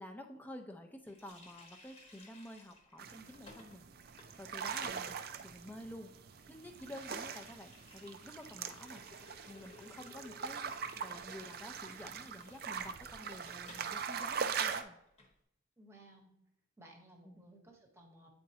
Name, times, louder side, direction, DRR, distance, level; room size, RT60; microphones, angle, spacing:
voice 1, 0.0-3.9 4.4-6.1 6.5-9.0 9.4-15.0 17.2-17.4, left 1 dB, 10° left, 4 dB, 0.5 m, -50 dB
Water tap faucet, 1.1-13.9 14.2-14.3 14.6-15.3, left 2 dB, 30° left, 1.0 m, -60 dB
sound 1, 3.0-14.8, right 6 dB, 50° right, 0.4 m, -42 dB
voice 2, 15.8-16.3 16.8-18.3, right 1 dB, 15° right, 1 dB, 1.0 m, -58 dB
8.6 x 4.3 x 2.8 m, 0.80 s
head